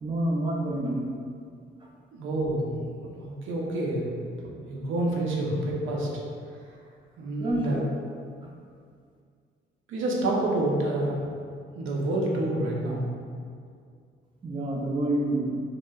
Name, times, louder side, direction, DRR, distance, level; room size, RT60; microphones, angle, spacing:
voice 1, 0.0-1.1 7.4-7.8 14.4-15.5, right 1 dB, 25° right, -2 dB, 0.4 m, -28 dB
voice 2, 2.1-2.7 3.2-4.1 4.7-6.1 7.2-7.9 9.9-11.2 11.7-13.1, right 1 dB, 80° right, -3 dB, 0.5 m, -28 dB
2.9 x 2.1 x 2.3 m, 2.2 s
cardioid pair, 90°, 20 cm